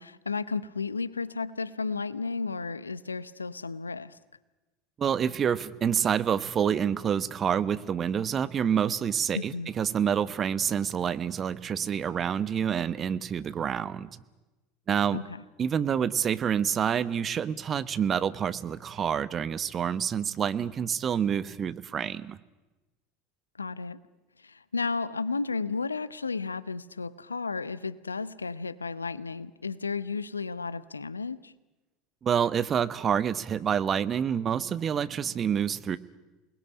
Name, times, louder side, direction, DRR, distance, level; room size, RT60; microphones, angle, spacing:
voice 1, 0.0-4.2 9.3-9.7 15.1-15.4 23.6-24.0 24.4-31.5, left 4 dB, 85° left, 0.8 m, -33 dB
voice 2, 5.0-14.2 14.9-15.2 15.6-22.4 32.2-36.0, right 8 dB, 35° right, 1.2 m, -27 dB
28.5 x 20.5 x 10.0 m
figure-of-eight pair, 75°, 0 cm